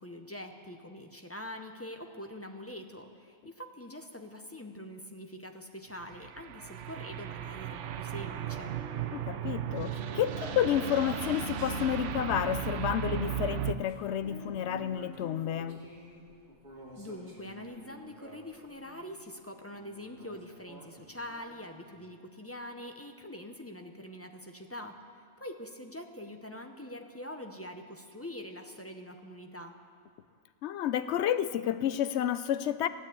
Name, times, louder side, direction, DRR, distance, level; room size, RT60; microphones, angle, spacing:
voice 1, 0.0-8.7 16.9-25.0 25.4-29.7, left 1 dB, 15° left, 4 dB, 0.5 m, -44 dB
sound 1, 6.0-13.7, right 9 dB, 65° right, 0.9 m, -36 dB
voice 2, 9.1-15.8 30.6-32.9, left 10 dB, 65° left, 13 dB, 0.7 m, -30 dB
sound 2, 10.3-14.7, left 3 dB, 90° left, 3.5 m, -46 dB
sound 3, 13.8-19.1 19.7-22.0, right 1 dB, 35° right, 2.6 m, -50 dB
14.0 x 9.6 x 8.4 m, 2.2 s
omnidirectional pair, 1.4 m